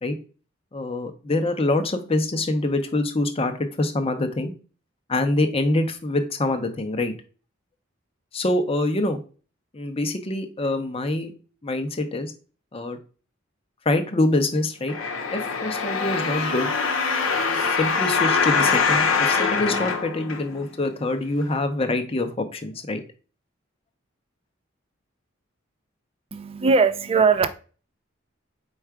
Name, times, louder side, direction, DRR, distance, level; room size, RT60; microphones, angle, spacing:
voice 1, 0.7-4.5 5.1-7.1 8.3-9.2 9.7-11.3 11.6-12.3 12.7-13.0 13.9-14.9 15.3-16.8 17.5-23.0, left 2 dB, 30° left, 0.6 m, -25 dB
sound 1, 14.9-20.8 21.4-21.5, left 5 dB, 85° left, 0.7 m, -23 dB
voice 2, 26.3-27.5, right 5 dB, 30° right, 0.4 m, -19 dB
4.6 x 2.3 x 4.6 m
head